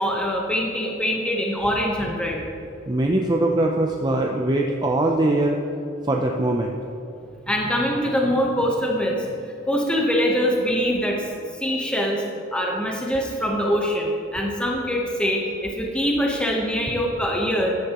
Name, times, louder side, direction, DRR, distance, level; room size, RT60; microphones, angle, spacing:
voice 1, 0.0-2.4 7.5-9.3 9.7-11.3 11.6-12.2 12.5-17.7, equal, 5° left, -1 dB, 0.9 m, -23 dB
voice 2, 2.9-5.6 6.0-6.8, right 1 dB, 20° right, 0 dB, 0.4 m, -21 dB
13.0 x 10.5 x 3.0 m, 2.6 s
head